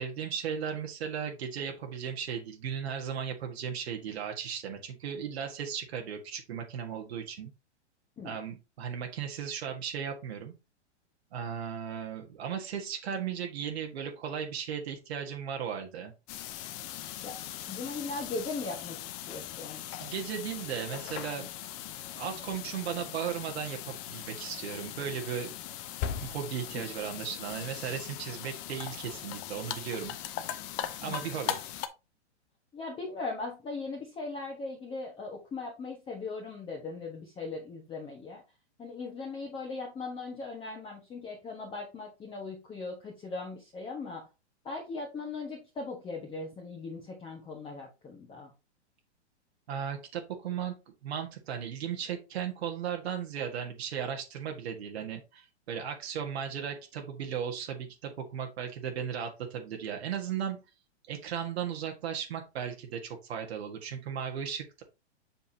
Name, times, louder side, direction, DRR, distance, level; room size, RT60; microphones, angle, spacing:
voice 1, 0.0-7.5 8.2-10.5 11.3-16.1 20.0-21.5 22.2-25.5 26.2-30.1 31.0-31.6 49.7-50.7 51.0-60.6 61.1-64.8, right 8 dB, 65° right, 3 dB, 1.6 m, -36 dB
sound 1, 16.3-31.9, left 11 dB, 30° left, 0.7 m, -39 dB
voice 2, 17.2-19.0 19.3-19.8 26.7-26.8 31.0-31.3 32.7-38.4 38.8-44.2 44.6-48.5, left 3 dB, 15° left, -1 dB, 1.4 m, -39 dB
7.2 x 5.5 x 2.8 m, 0.27 s
hypercardioid pair, 135°, 34 cm